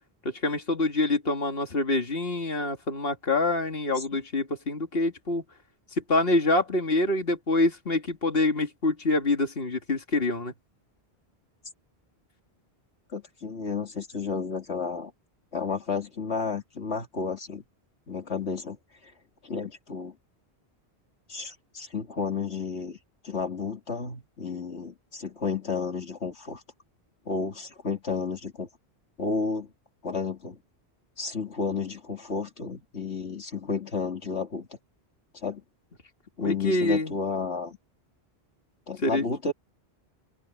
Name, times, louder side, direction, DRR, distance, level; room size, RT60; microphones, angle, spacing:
voice 1, 0.2-5.4 6.1-10.5 36.4-37.1 39.0-39.2, left 2 dB, 60° left, 2.7 m, -26 dB
voice 2, 13.1-15.1 15.5-17.6 18.1-18.8 19.0-19.1 19.4-20.1 21.3-23.0 23.2-26.6 27.3-28.7 29.2-29.7 30.0-30.6 31.2-34.7 35.3-35.6 36.4-37.8 38.9-39.5, left 4 dB, 85° left, 2.8 m, -32 dB
omnidirectional pair, 1.1 m